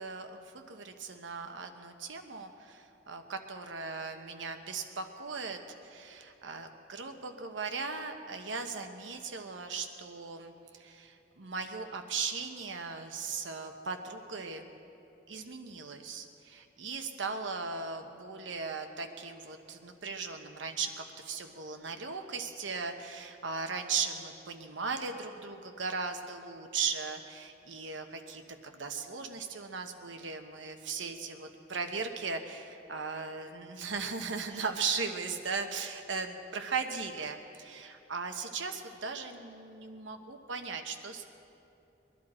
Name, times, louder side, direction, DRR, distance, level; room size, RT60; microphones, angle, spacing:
voice 1, 0.0-14.7 15.3-41.2, right 5 dB, 90° right, 6 dB, 1.1 m, -38 dB
22.5 x 11.5 x 4.3 m, 2.7 s
head